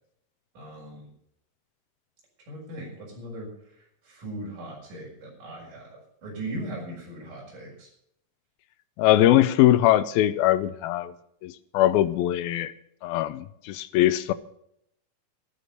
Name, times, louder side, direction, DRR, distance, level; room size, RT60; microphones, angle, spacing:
voice 1, 0.5-1.1 2.5-3.5 4.0-7.9, right 1 dB, 55° right, -3 dB, 7.7 m, -38 dB
voice 2, 9.0-11.1 11.4-12.7 13.0-14.3, left 13 dB, 80° left, 14 dB, 2.4 m, -21 dB
13.0 x 11.5 x 6.8 m, 0.72 s
omnidirectional pair, 4.5 m